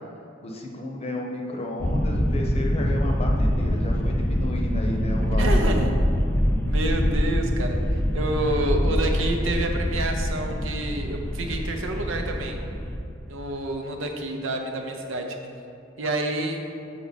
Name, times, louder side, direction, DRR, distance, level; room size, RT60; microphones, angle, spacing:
voice 1, 0.4-5.6, left 1 dB, 30° left, 0 dB, 0.8 m, -32 dB
sound 1, 1.8-13.0, equal, 10° left, 0.4 m, -24 dB
voice 2, 5.4-5.9 6.7-12.6 13.3-15.4 16.0-16.6, right 1 dB, 80° right, 3 dB, 0.7 m, -28 dB
7.0 x 4.6 x 4.0 m, 2.5 s
head